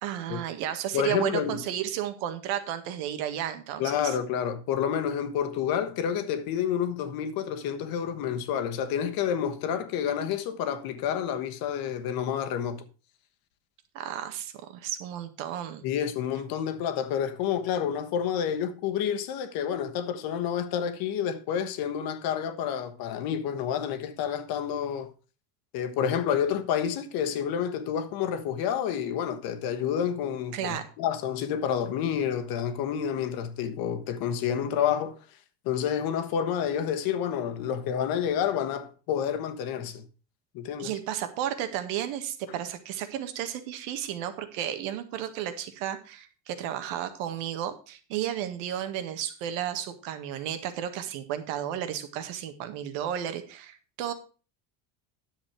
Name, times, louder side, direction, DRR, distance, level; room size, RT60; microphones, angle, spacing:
voice 1, 0.0-4.2 13.9-15.8 30.5-30.9 40.8-54.1, right 10 dB, 80° right, 1.9 m, -33 dB
voice 2, 0.9-1.6 3.8-12.8 15.8-25.1 25.7-35.2 35.6-40.0 40.5-40.9, left 8 dB, 60° left, 1.4 m, -29 dB
10.0 x 7.4 x 4.7 m
cardioid pair, 135°, 40 cm